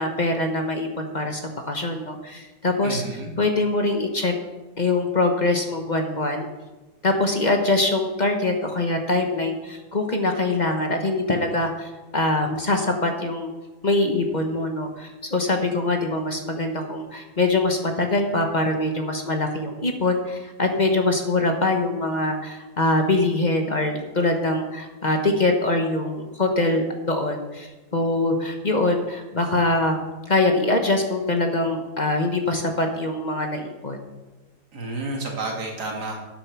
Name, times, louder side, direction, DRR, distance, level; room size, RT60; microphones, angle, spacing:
voice 1, 0.0-3.0 3.4-4.3 4.8-6.5 7.0-13.5 13.8-30.0 30.3-34.0, left 2 dB, 30° left, 4 dB, 0.9 m, -23 dB
voice 2, 2.8-3.3 34.7-36.2, right 2 dB, 60° right, 0 dB, 2.4 m, -30 dB
9.3 x 8.6 x 6.0 m, 1.2 s
omnidirectional pair, 2.0 m